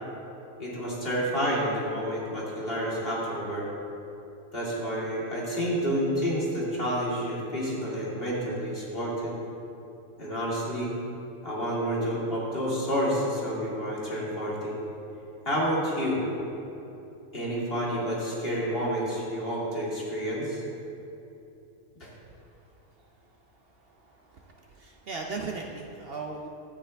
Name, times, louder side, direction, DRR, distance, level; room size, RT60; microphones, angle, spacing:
voice 1, 0.6-3.7 4.5-9.3 10.2-10.9 11.4-14.7 15.4-16.2 17.3-20.6 22.0-22.1, equal, 45° left, -6 dB, 2.5 m, -29 dB
voice 2, 24.3-26.5, right 4 dB, 55° right, 1 dB, 0.8 m, -37 dB
12.5 x 9.0 x 3.4 m, 2.9 s
omnidirectional pair, 1.3 m